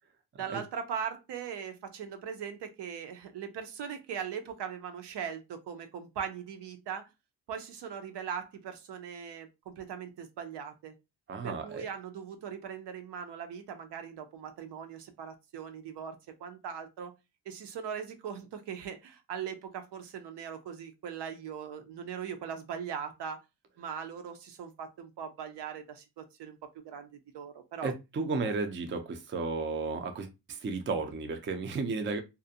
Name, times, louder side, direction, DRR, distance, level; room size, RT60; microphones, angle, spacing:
voice 1, 0.4-7.1 7.5-10.9 11.4-17.1 17.5-23.4 23.8-27.9, right 7 dB, 75° right, 0.6 m, -40 dB
voice 2, 11.3-11.9 27.8-32.2, right 4 dB, 30° right, 0.4 m, -33 dB
2.5 x 2.1 x 2.6 m
cardioid pair, 110°, 42 cm